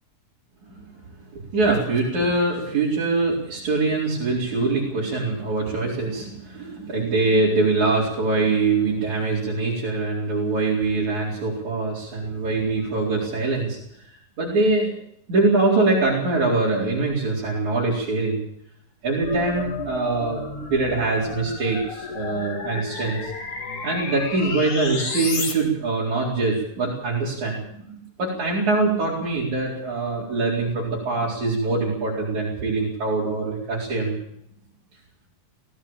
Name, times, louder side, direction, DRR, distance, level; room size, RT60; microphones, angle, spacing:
voice 1, 1.5-13.8 14.4-14.9 15.3-18.4 19.0-20.4 20.7-23.3 23.8-34.2, right 3 dB, 60° right, -6 dB, 5.6 m, -23 dB
sound 1, 19.2-25.5, left 4 dB, 45° left, 2.9 m, -32 dB
17.5 x 17.0 x 8.8 m, 0.73 s
omnidirectional pair, 3.7 m